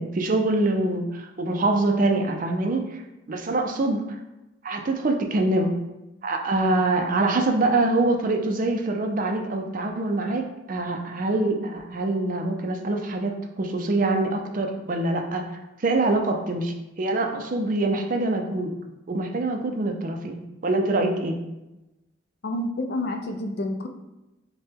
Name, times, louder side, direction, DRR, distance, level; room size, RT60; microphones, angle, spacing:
voice 1, 0.0-3.0 3.3-4.2 4.6-5.7 6.2-10.4 10.7-18.7 19.1-21.3, right 2 dB, 40° right, 4 dB, 0.4 m, -24 dB
voice 2, 22.4-23.9, left 1 dB, 50° left, 5 dB, 0.4 m, -29 dB
5.5 x 2.2 x 3.4 m, 0.97 s
head